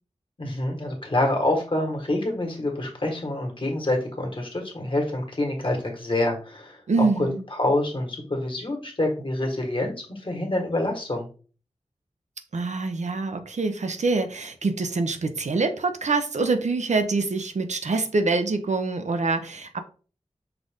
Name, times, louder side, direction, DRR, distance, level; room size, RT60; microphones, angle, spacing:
voice 1, 0.4-7.3 7.6-11.3, left 1 dB, 50° left, 1 dB, 1.5 m, -26 dB
voice 2, 6.9-7.4 12.5-19.8, right 3 dB, 80° right, 8 dB, 0.6 m, -25 dB
5.7 x 2.6 x 3.6 m, 0.38 s
wide cardioid pair, 60°, 12 cm